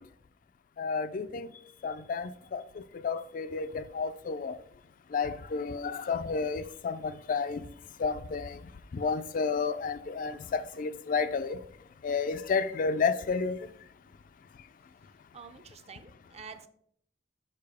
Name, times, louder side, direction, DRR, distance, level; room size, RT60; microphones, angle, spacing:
voice 1, 0.8-1.5 1.8-2.6 3.0-4.6 5.1-7.6 8.0-8.6 8.9-11.6 12.0-13.6, left 5 dB, 45° left, 0.3 m, -31 dB
voice 2, 15.3-16.7, right 5 dB, 35° right, 0.5 m, -48 dB
6.7 x 5.2 x 3.5 m
head